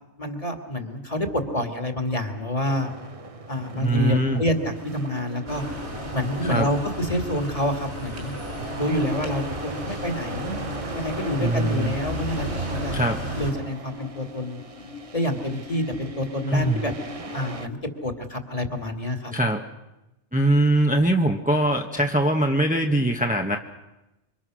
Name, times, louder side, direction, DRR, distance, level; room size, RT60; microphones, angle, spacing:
voice 1, 0.2-2.9 3.5-5.6 6.1-8.3 8.8-10.6 10.9-13.0 13.4-14.6 15.1-16.9 17.3-17.8 18.0-19.3, left 1 dB, 30° left, 5 dB, 2.3 m, -27 dB
sound 1, 2.7-17.7, right 4 dB, 30° right, 0.9 m, -40 dB
voice 2, 3.7-4.4 6.4-6.7 11.4-12.0 12.9-13.2 16.5-16.8 19.3-19.6 20.3-23.6, right 1 dB, 5° right, 2 dB, 1.1 m, -22 dB
sound 2, 3.9-17.8, left 5 dB, 55° left, 3.1 m, -43 dB
sound 3, 5.5-13.5, right 1 dB, 70° right, 5.7 m, -34 dB
26.5 x 24.5 x 6.3 m, 0.97 s
omnidirectional pair, 1.2 m